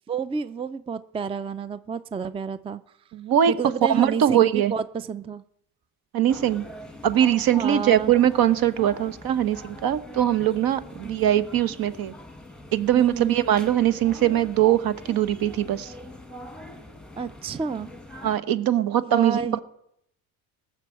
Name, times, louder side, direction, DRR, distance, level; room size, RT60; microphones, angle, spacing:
voice 1, 0.1-2.8 3.5-5.4 7.6-8.1 11.0-11.2 12.9-13.4 17.2-17.9 19.0-19.6, right 6 dB, 15° right, 15 dB, 0.4 m, -30 dB
voice 2, 3.1-3.5 3.9-4.7 6.1-6.6 7.0-12.1 12.7-15.9 18.2-19.6, right 11 dB, 60° right, 14 dB, 1.1 m, -21 dB
sound 1, 6.3-18.4, left 1 dB, ahead, 1.6 m, -42 dB
18.0 x 7.0 x 7.7 m, 0.75 s
cardioid pair, 105°, 40 cm